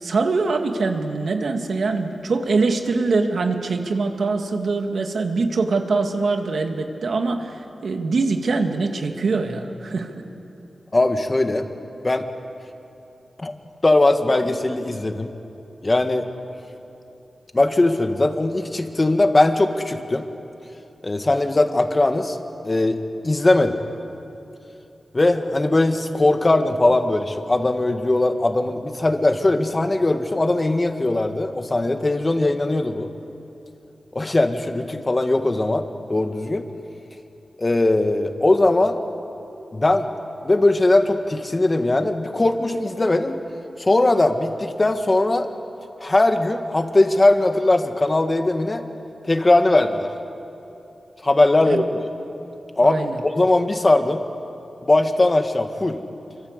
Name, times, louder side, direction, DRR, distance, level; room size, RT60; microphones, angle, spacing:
voice 1, 0.0-10.2 51.7-51.8 52.8-53.2, right 3 dB, 80° right, 4 dB, 2.1 m, -23 dB
voice 2, 10.9-11.7 12.0-12.2 13.4-13.6 13.8-15.3 15.8-16.3 17.5-20.3 21.0-22.4 22.6-23.0 23.2-23.8 25.1-33.1 34.1-36.7 37.6-39.0 39.7-40.1 40.4-43.4 43.8-45.5 46.0-48.8 49.2-50.1 51.2-52.0 52.8-54.2 54.8-56.0, left 2 dB, 30° left, 6 dB, 1.9 m, -19 dB
27.5 x 25.0 x 8.2 m, 2.8 s
wide cardioid pair, 75°, 0 cm